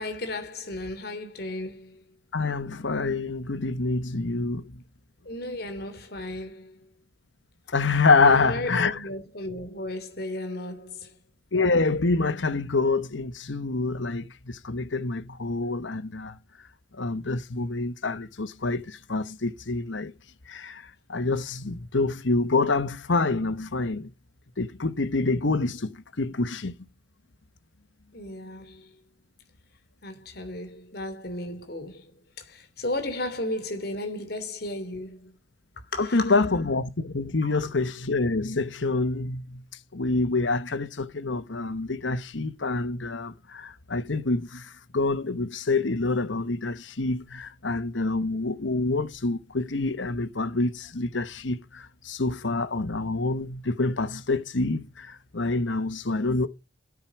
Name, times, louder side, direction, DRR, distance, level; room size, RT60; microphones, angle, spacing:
voice 1, 0.0-2.0 5.2-6.8 8.2-11.1 28.1-28.9 30.0-32.1 32.4-35.3 35.9-36.4 37.4-37.6, left 1 dB, 55° left, 3.2 m, -34 dB
voice 2, 2.3-4.8 7.7-9.0 11.5-16.4 16.9-20.1 20.5-24.1 24.6-26.7 36.0-39.6 39.9-56.5, left 3 dB, 80° left, 1.1 m, -26 dB
9.7 x 9.0 x 6.0 m
head